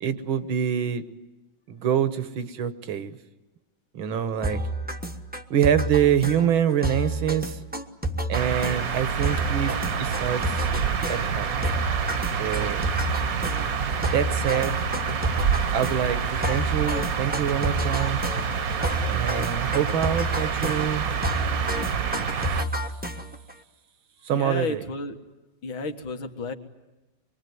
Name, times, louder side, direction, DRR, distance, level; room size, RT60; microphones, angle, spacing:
voice 1, 0.0-1.0 1.7-3.1 3.9-4.6 5.5-7.6 8.3-10.6 11.1-11.6 12.4-12.9 14.1-14.9 15.7-18.2 19.1-21.1 24.2-24.8, right 9 dB, 75° right, 12 dB, 2.0 m, -25 dB
sound 1, 4.4-23.5, right 1 dB, 5° right, 0.9 m, -30 dB
sound 2, 8.3-22.6, right 6 dB, 50° right, 1.4 m, -27 dB
voice 2, 24.3-25.2 25.6-26.5, left 4 dB, 80° left, 5 dB, 2.6 m, -32 dB
25.0 x 23.0 x 9.6 m, 1.1 s
omnidirectional pair, 2.2 m